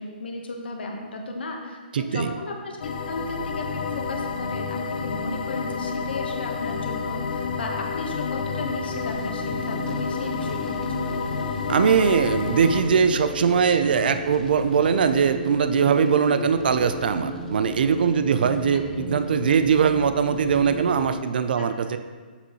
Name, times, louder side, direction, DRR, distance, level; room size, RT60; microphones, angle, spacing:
voice 1, 0.0-11.4 19.5-19.6 21.6-21.7, left 2 dB, 75° left, 1 dB, 1.3 m, -35 dB
voice 2, 1.9-2.3 11.7-22.0, right 6 dB, 60° right, 9 dB, 0.5 m, -21 dB
sound 1, 2.8-12.8, left 5 dB, 55° left, 0.6 m, -29 dB
sound 2, 8.5-21.1, left 1 dB, 5° left, 0.5 m, -35 dB
7.0 x 7.0 x 3.1 m, 1.5 s
hypercardioid pair, 160°, 6 cm